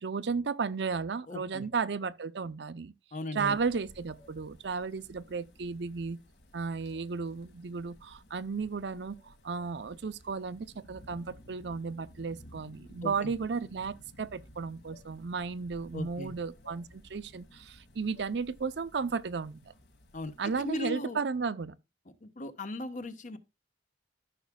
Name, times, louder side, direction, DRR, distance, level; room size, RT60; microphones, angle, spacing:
voice 1, 0.0-2.9 3.3-6.2 6.5-19.7 20.4-21.8, right 5 dB, 65° right, 0.6 m, -34 dB
voice 2, 1.3-1.7 3.1-3.6 13.0-13.3 15.9-16.3 20.1-21.2 22.2-23.4, left 2 dB, 45° left, 1.0 m, -38 dB
sound 1, 3.4-20.7, left 1 dB, 65° left, 1.8 m, -56 dB
13.5 x 6.0 x 2.3 m
head